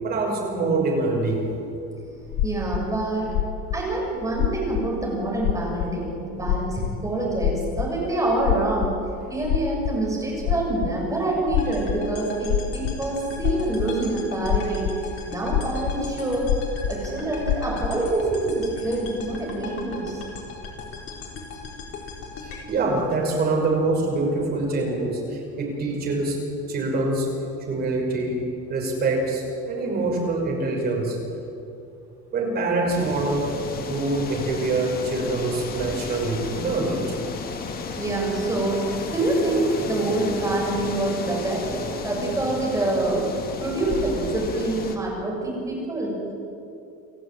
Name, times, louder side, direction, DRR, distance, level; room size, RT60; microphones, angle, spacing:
voice 1, 0.0-1.5 22.4-26.4 26.7-27.3 27.7-28.4 28.7-31.2 32.3-37.2, right 2 dB, 30° right, 0 dB, 6.2 m, -25 dB
sound 1, 2.3-2.9 3.2-3.8 4.3-4.9 5.4-6.1 6.4-8.0 8.4-8.9 9.2-10.0 10.4-10.9 11.5-12.0 12.4-13.0 13.4-14.0 14.4-15.0 15.2-16.0 16.4-16.9 17.4-18.0, left 11 dB, 60° left, 1.1 m, -25 dB
voice 2, 2.4-3.3 3.7-8.9 9.3-16.5 16.9-20.2 38.0-41.6 42.0-43.3 43.6-46.2, right 2 dB, 10° right, -3 dB, 7.1 m, -26 dB
sound 2, 11.6-23.8, left 4 dB, 45° left, 4.5 m, -38 dB
sound 3, 32.9-45.0, left 4 dB, 30° left, 2.1 m, -33 dB
29.0 x 15.0 x 9.1 m, 2.6 s
cardioid pair, 175°, 31 cm